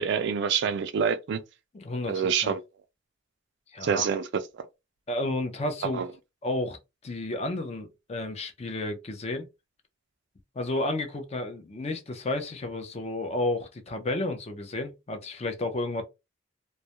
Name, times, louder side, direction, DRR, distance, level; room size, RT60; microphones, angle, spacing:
voice 1, 0.0-1.4 2.1-2.6 3.8-4.3 5.9-6.1, right 7 dB, 65° right, 0.3 m, -26 dB
voice 2, 1.7-2.5 3.7-4.1 5.1-6.0 6.4-6.8 7.0-9.5 10.6-16.0, left 2 dB, 35° left, 0.5 m, -31 dB
2.3 x 2.1 x 2.8 m
head